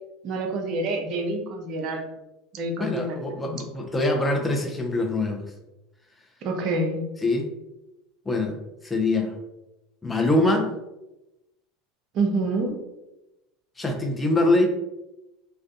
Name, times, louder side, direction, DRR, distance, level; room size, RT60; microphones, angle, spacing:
voice 1, 0.2-2.1 2.5-3.6 6.4-7.0 12.1-12.8, right 2 dB, 50° right, 2 dB, 0.5 m, -27 dB
voice 2, 2.8-5.5 7.2-7.5 8.3-8.5 8.8-9.3 10.0-10.7 13.8-14.7, left 2 dB, 15° left, 3 dB, 0.5 m, -23 dB
2.4 x 2.2 x 2.6 m, 0.96 s
hypercardioid pair, 85°, 0 cm